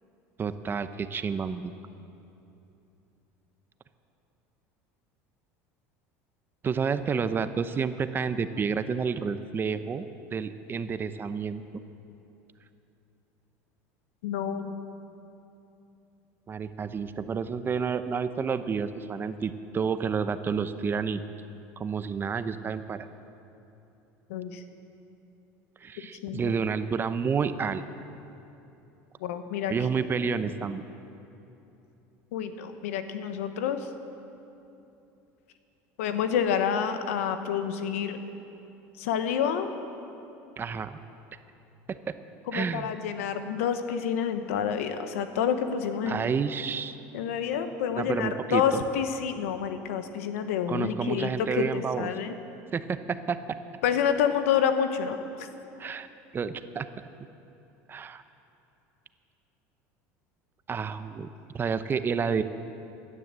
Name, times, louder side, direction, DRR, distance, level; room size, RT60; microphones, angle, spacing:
voice 1, 0.4-1.7 6.6-11.6 16.5-21.2 21.8-23.1 25.8-27.8 29.7-30.8 40.6-41.0 41.9-42.1 42.5-42.9 46.1-47.0 48.0-48.8 50.7-52.1 52.7-53.4 55.8-56.1 56.3-56.9 57.9-58.2 60.7-61.3 61.5-62.4, right 6 dB, 30° right, 11 dB, 0.8 m, -30 dB
voice 2, 14.2-14.7 24.3-24.6 26.2-26.5 29.2-29.7 32.3-33.9 36.0-38.2 39.0-39.7 42.5-46.2 47.1-52.4 53.8-55.5, left 8 dB, 90° left, 9 dB, 1.1 m, -28 dB
16.0 x 11.0 x 7.5 m, 2.9 s
supercardioid pair, 105°, 7 cm